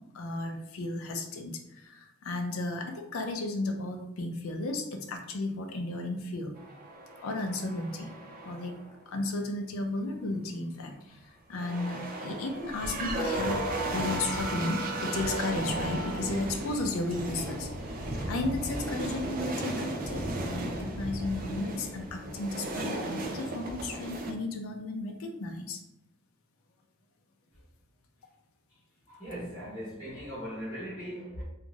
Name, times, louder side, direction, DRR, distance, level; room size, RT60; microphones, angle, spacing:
voice 1, 0.1-6.5 7.2-8.1 8.4-8.8 9.1-13.6 13.9-25.8, left 2 dB, 80° left, 0.5 m, -34 dB
sound 1, 6.6-8.9 11.5-24.3, right 1 dB, 40° right, 0.4 m, -35 dB
voice 2, 29.1-31.4, equal, 20° left, 0.9 m, -39 dB
2.5 x 2.4 x 3.0 m
head